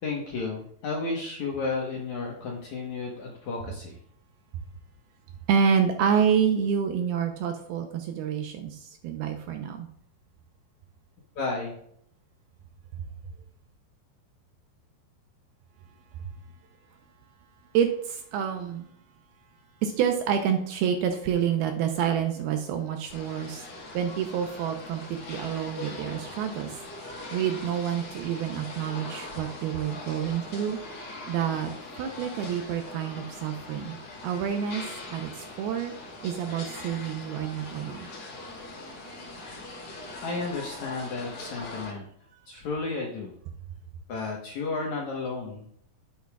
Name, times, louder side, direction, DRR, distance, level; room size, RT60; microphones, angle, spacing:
voice 1, 0.0-4.0 11.4-11.7 40.2-42.1 42.5-43.3 44.1-45.9, left 3 dB, 75° left, -1 dB, 1.7 m, -32 dB
voice 2, 5.5-9.9 17.7-18.9 19.8-23.6 23.9-34.0 34.2-34.8 35.1-35.9 36.2-38.1 39.1-39.2, right 8 dB, 80° right, 5 dB, 2.3 m, -28 dB
sound 1, 23.1-41.9, left 2 dB, 50° left, 1.6 m, -41 dB
10.5 x 8.7 x 2.4 m, 0.68 s
omnidirectional pair, 5.1 m